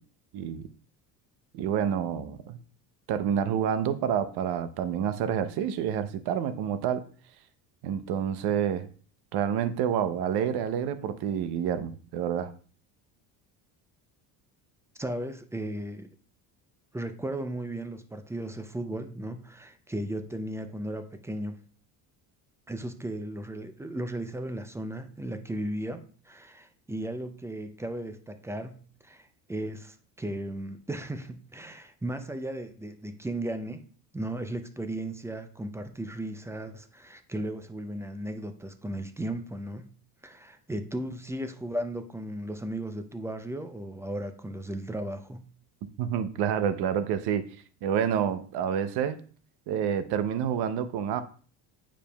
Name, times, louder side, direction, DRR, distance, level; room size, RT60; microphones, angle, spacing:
voice 1, 1.5-2.6 3.1-7.0 7.8-8.9 9.3-12.5 46.0-47.5 47.8-49.2 49.7-51.2, right 8 dB, 65° right, 0.7 m, -28 dB
voice 2, 15.0-16.1 16.9-21.6 22.7-28.8 29.0-33.8 34.1-39.9 40.2-45.5, right 1 dB, 5° right, 0.3 m, -36 dB
8.9 x 5.0 x 2.2 m
cardioid pair, 115°, 42 cm